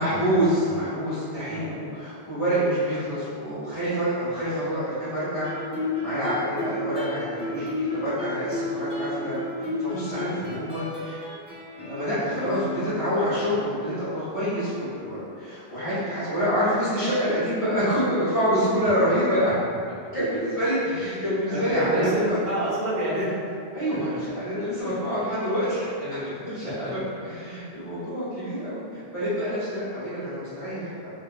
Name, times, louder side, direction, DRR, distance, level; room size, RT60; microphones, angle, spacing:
voice 1, 0.0-5.5 5.8-11.2 11.7-19.5 20.1-22.4 23.7-25.9 26.4-31.1, equal, 30° left, -15 dB, 1.1 m, -27 dB
Guitar, 5.4-13.1, left 2 dB, 5° right, 0.5 m, -32 dB
voice 2, 21.5-23.3 24.8-25.1 26.0-26.4 26.8-27.0, right 1 dB, 55° right, -7 dB, 0.8 m, -29 dB
2.8 x 2.2 x 2.3 m, 2.4 s
omnidirectional pair, 1.1 m